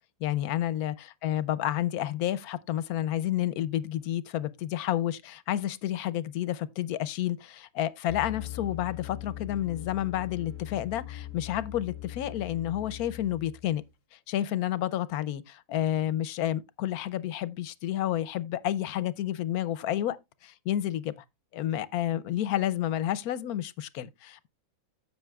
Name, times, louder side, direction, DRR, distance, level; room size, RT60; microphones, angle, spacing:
voice 1, 0.2-13.8 14.1-20.2 20.4-21.1 21.5-24.5, left 12 dB, 85° left, 1.1 m, -30 dB
sound 1, 8.1-13.8, left 13 dB, 60° left, 1.4 m, -41 dB
15.0 x 5.9 x 2.3 m
omnidirectional pair, 1.5 m